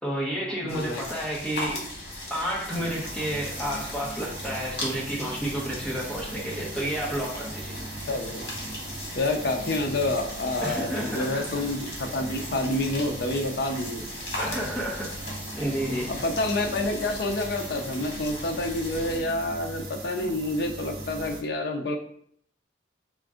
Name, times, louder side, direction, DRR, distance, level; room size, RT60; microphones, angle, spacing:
voice 1, 0.0-1.8 2.3-7.7 10.6-11.4 14.4-15.1 15.6-16.1, equal, 5° left, -4 dB, 0.9 m, -30 dB
voice 2, 0.6-1.1 8.1-8.5 9.2-14.1 16.1-22.0, left 2 dB, 60° left, 3 dB, 0.5 m, -28 dB
sound 1, 0.7-19.2, left 1 dB, 75° left, 1.3 m, -38 dB
sound 2, 2.7-21.4, right 2 dB, 55° right, 0.8 m, -40 dB
3.7 x 2.5 x 3.6 m, 0.65 s
head